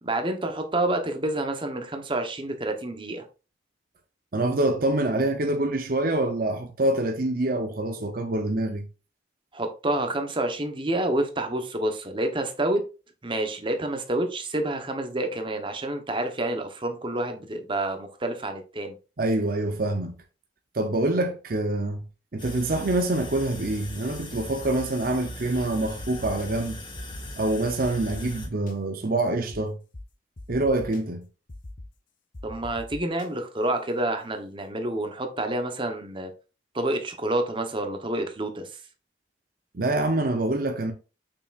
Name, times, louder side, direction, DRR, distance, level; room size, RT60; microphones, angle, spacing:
voice 1, 0.0-3.2 9.5-12.8 13.2-18.9 32.4-36.3 36.7-38.7, right 1 dB, 25° right, 0.9 m, -28 dB
voice 2, 4.3-8.8 19.2-20.2 20.7-22.0 22.3-26.8 27.4-29.8 30.5-31.3 39.7-40.9, right 2 dB, 50° right, 0.7 m, -26 dB
sound 1, 22.4-28.5, equal, 25° left, 1.8 m, -39 dB
sound 2, 25.8-26.5 27.0-27.3 27.8-28.7 29.5-29.6 29.9-30.0 30.4-31.0 31.5-31.9 32.3-33.3, left 2 dB, 45° left, 0.7 m, -41 dB
6.8 x 5.8 x 2.5 m
head